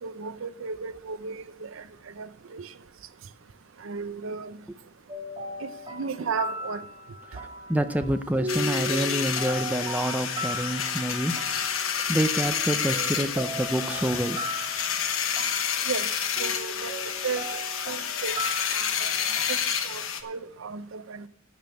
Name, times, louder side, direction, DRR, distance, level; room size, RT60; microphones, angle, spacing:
voice 1, 0.0-1.8 2.2-2.7 3.8-4.6 5.6-6.8 15.9-16.1 16.4-16.9 17.2-18.4 18.7-19.1 19.5-19.6 19.8-21.3, right 5 dB, 80° right, 0.6 m, -34 dB
sound 1, 5.1-19.6, right 1 dB, 30° right, 1.8 m, -38 dB
voice 2, 7.7-11.8 12.1-14.4, right 1 dB, 10° right, 0.5 m, -27 dB
sound 2, 8.5-20.2, left 8 dB, 90° left, 1.1 m, -29 dB
12.0 x 5.3 x 7.7 m
head